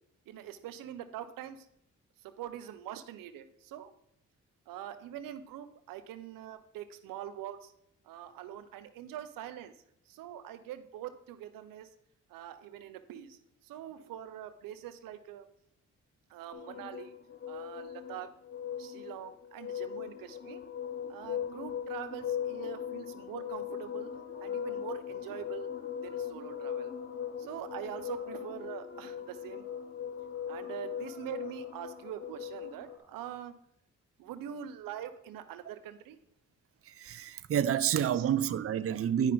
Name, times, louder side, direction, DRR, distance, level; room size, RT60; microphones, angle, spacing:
voice 1, 0.3-1.7 2.2-3.9 4.7-7.7 8.0-9.7 10.1-11.9 12.3-13.4 13.6-15.4 16.3-17.1 17.5-18.3 18.8-20.6 21.1-24.1 24.4-25.7 26.0-26.9 27.4-29.6 30.5-33.5 34.2-36.2 38.1-38.2, right 11 dB, 85° right, 0.6 m, -44 dB
sound 1, 16.5-33.0, left 9 dB, 40° left, 0.9 m, -39 dB
sound 2, 23.9-33.2, right 1 dB, 10° right, 2.8 m, -58 dB
voice 2, 36.8-39.3, right 9 dB, 45° right, 0.5 m, -29 dB
9.0 x 5.7 x 3.8 m
supercardioid pair, 50°, 33 cm